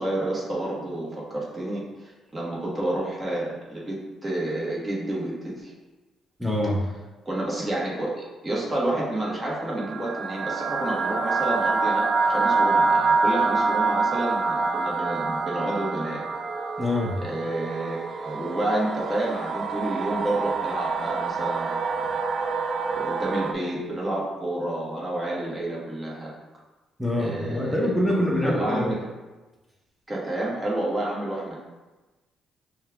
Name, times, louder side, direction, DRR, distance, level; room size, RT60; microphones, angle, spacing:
voice 1, 0.0-5.7 7.2-16.2 17.2-21.8 22.9-26.3 27.1-27.9 28.4-29.1 30.1-31.6, right 1 dB, 20° right, -5 dB, 1.3 m, -29 dB
voice 2, 6.4-6.8 16.8-17.2 27.0-28.9, left 1 dB, ahead, -3 dB, 1.0 m, -25 dB
sound 1, 9.3-23.5, right 4 dB, 50° right, 0.3 m, -26 dB
5.5 x 2.4 x 3.4 m, 1.2 s
cardioid pair, 90°, 0 cm